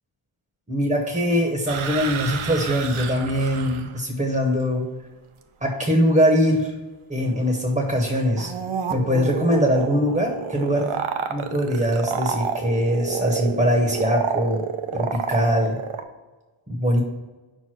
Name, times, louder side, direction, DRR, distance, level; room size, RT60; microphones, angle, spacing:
voice 1, 0.7-4.8 5.6-6.7 7.1-8.5 8.9-11.0 11.3-14.6 14.9-15.8 16.7-17.0, equal, 15° right, 1 dB, 1.0 m, -22 dB
sound 1, 1.7-4.0 8.0-16.0, right 7 dB, 75° right, 0.8 m, -29 dB
5.4 x 4.6 x 6.0 m, 1.2 s
wide cardioid pair, 145°, 50 cm